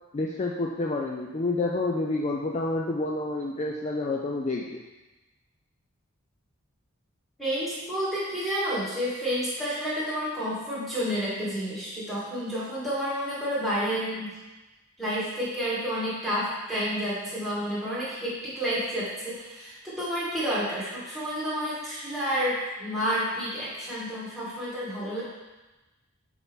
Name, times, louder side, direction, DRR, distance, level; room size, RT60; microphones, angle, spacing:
voice 1, 0.1-4.8, left 2 dB, 30° left, -1 dB, 0.3 m, -29 dB
voice 2, 7.4-14.3 15.0-25.2, equal, ahead, -10 dB, 2.0 m, -30 dB
7.0 x 4.1 x 3.6 m, 1.1 s
head